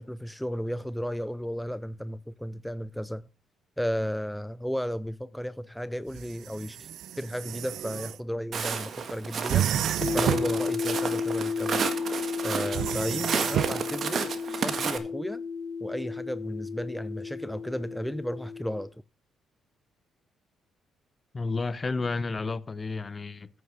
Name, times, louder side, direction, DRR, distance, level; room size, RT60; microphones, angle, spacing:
voice 1, 0.0-3.3 3.8-6.9 7.2-11.8 12.4-15.4 15.8-18.9, equal, ahead, 0.4 m, -34 dB
sound 1, 6.1-8.2 9.5-10.6 12.7-13.8, right 11 dB, 75° right, 0.6 m, -30 dB
Walk footsteps, 8.5-15.0, right 6 dB, 55° right, 1.5 m, -32 dB
sound 2, 10.0-18.8, left 5 dB, 55° left, 1.3 m, -33 dB
voice 2, 21.3-23.5, left 3 dB, 30° left, 0.7 m, -31 dB
9.2 x 6.5 x 6.5 m
cardioid pair, 90°, 0 cm